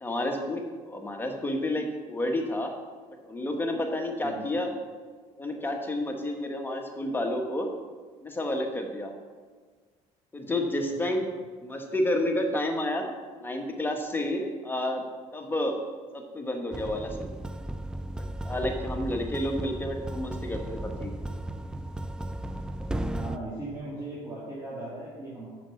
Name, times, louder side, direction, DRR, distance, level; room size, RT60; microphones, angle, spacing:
voice 1, 0.0-2.7 3.2-4.7 5.4-7.7 8.2-9.1 10.3-11.3 11.6-13.1 13.4-15.0 15.3-15.8 16.1-17.3 18.4-21.1, left 1 dB, 15° left, 2 dB, 1.3 m, -30 dB
voice 2, 4.2-4.5 23.1-25.5, right 2 dB, 25° right, -8 dB, 2.3 m, -38 dB
sound 1, 16.7-23.4, right 1 dB, 5° right, 0.3 m, -35 dB
7.5 x 5.9 x 5.8 m, 1.5 s
cardioid pair, 110°, 13 cm